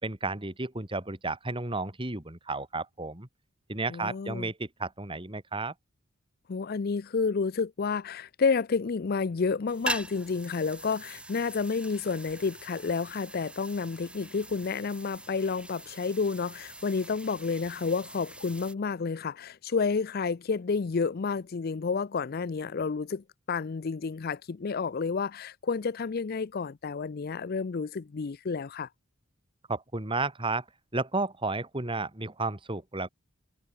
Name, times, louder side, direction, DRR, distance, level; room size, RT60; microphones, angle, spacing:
voice 1, 0.0-3.3 3.7-5.7 29.7-30.6 30.9-33.1, right 3 dB, 25° right, 2.3 m, -32 dB
voice 2, 3.9-4.5 6.5-28.9, left 5 dB, 45° left, 0.5 m, -30 dB
sound 1, 9.7-18.7, right 1 dB, 5° right, 3.2 m, -42 dB
head